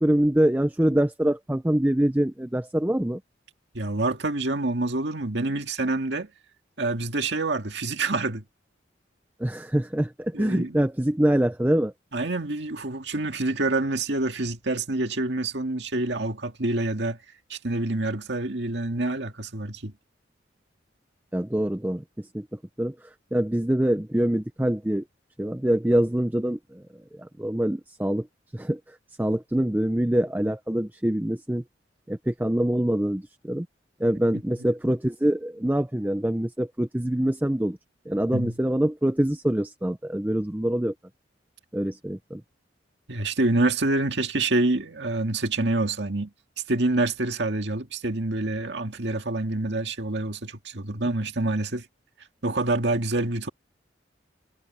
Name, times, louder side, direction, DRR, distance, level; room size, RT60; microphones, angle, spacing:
voice 1, 0.0-3.2 9.4-11.9 21.3-22.5 22.8-25.0 25.4-28.3 28.5-31.6 32.1-33.7 34.0-37.8 38.1-40.9 41.7-42.4, right 1 dB, 10° right, 0.5 m, -25 dB
voice 2, 3.7-6.3 6.8-8.4 10.3-10.8 12.1-17.2 17.5-19.9 38.3-38.5 43.1-46.3 46.7-51.9 52.4-53.5, right 2 dB, 70° right, 2.0 m, -27 dB
head